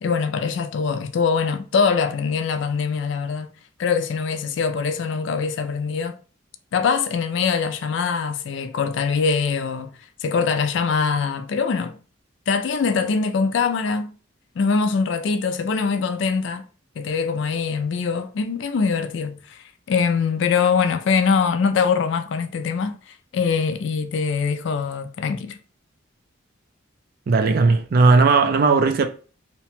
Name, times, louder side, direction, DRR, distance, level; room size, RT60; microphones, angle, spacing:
voice 1, 0.0-3.5 3.8-6.2 6.7-9.9 10.2-11.9 12.5-14.1 14.6-16.7 17.0-25.6, left 5 dB, 65° left, 0.3 m, -23 dB
voice 2, 27.3-29.1, right 4 dB, 45° right, 0.3 m, -16 dB
2.8 x 2.1 x 2.9 m
head